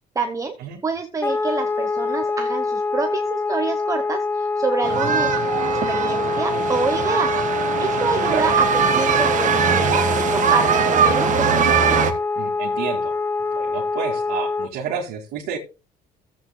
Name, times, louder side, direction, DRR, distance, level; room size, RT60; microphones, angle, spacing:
voice 1, 0.1-0.6 0.8-5.4 5.9-8.7 8.9-11.5, right 4 dB, 20° right, 6 dB, 0.9 m, -27 dB
Wind instrument woodwind instrument, 1.2-14.7, left 3 dB, 15° left, 0.9 m, -25 dB
sound 1, 4.8-12.1, right 7 dB, 50° right, 1.6 m, -21 dB
voice 2, 4.9-5.5 8.3-8.5 12.4-13.2 13.5-15.6, right 7 dB, 80° right, -3 dB, 2.3 m, -30 dB
16.5 x 8.2 x 2.2 m, 0.31 s
cardioid pair, 110°, 17 cm